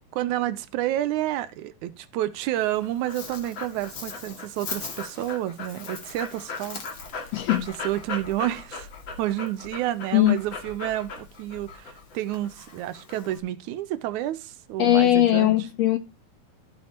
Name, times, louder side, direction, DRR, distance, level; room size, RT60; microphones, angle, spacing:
voice 1, 0.1-6.8 7.8-8.9 9.2-15.5, right 14 dB, 80° right, 2.0 m, -29 dB
Dog, 2.6-13.4, left 4 dB, 45° left, 2.2 m, -38 dB
voice 2, 7.3-7.7 10.1-10.4 14.8-16.0, left 13 dB, 80° left, 1.5 m, -20 dB
13.5 x 5.3 x 4.4 m
omnidirectional pair, 3.6 m